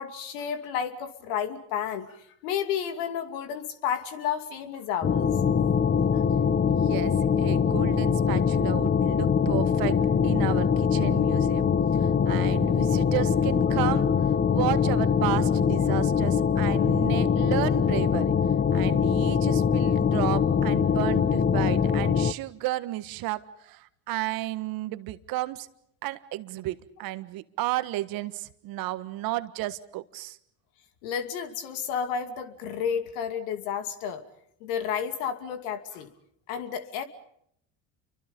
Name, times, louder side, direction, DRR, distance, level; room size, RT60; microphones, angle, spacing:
voice 1, 0.0-5.3 6.1-6.2 31.0-34.2 34.6-36.1 36.5-37.0, left 8 dB, 75° left, 9 dB, 2.7 m, -31 dB
sound 1, 5.0-22.3, left 7 dB, 25° left, 1.1 m, -23 dB
voice 2, 6.7-10.0 10.2-11.7 12.0-18.3 18.7-25.7 26.0-30.4, right 16 dB, 65° right, 13 dB, 1.6 m, -33 dB
29.5 x 24.5 x 5.4 m, 0.71 s
hypercardioid pair, 75°, 38 cm